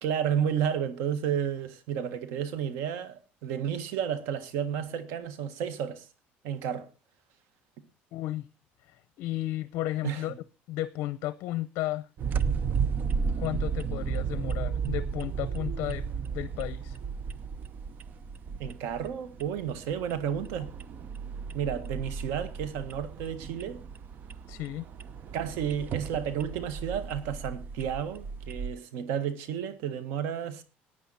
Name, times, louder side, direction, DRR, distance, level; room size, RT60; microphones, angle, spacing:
voice 1, 0.0-6.0 6.4-6.9 10.0-10.2 18.6-20.7 21.5-23.8 25.3-30.6, right 8 dB, 85° right, 1.7 m, -32 dB
voice 2, 8.1-8.5 8.8-10.3 10.7-12.1 13.4-16.0 16.3-17.0 24.5-24.9, left 15 dB, 75° left, 0.6 m, -33 dB
sound 1, 12.2-28.7, right 6 dB, 45° right, 0.8 m, -34 dB
15.0 x 9.6 x 4.2 m
cardioid pair, 130°, 4 cm